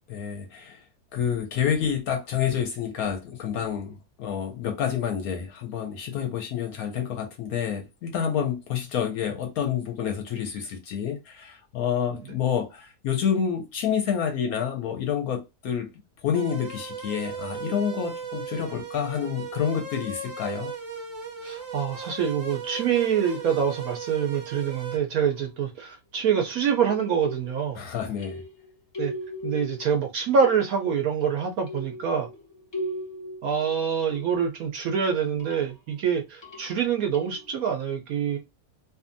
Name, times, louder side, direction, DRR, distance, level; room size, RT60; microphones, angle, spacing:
voice 1, 0.1-0.8 1.1-15.9 16.2-20.7 27.8-28.4, left 8 dB, 70° left, 0.9 m, -28 dB
sound 1, 16.3-25.0, right 6 dB, 35° right, 0.9 m, -37 dB
voice 2, 21.4-27.8 29.0-29.1 29.4-32.3 33.4-38.4, right 7 dB, 70° right, 0.9 m, -25 dB
sound 2, 21.5-21.6 23.3-23.9 25.2-25.8 26.3-27.8 28.2-30.1 30.4-31.0 31.7-34.6 35.2-35.8 36.4-37.5, equal, 40° left, 0.3 m, -39 dB
2.6 x 2.5 x 2.5 m
omnidirectional pair, 1.8 m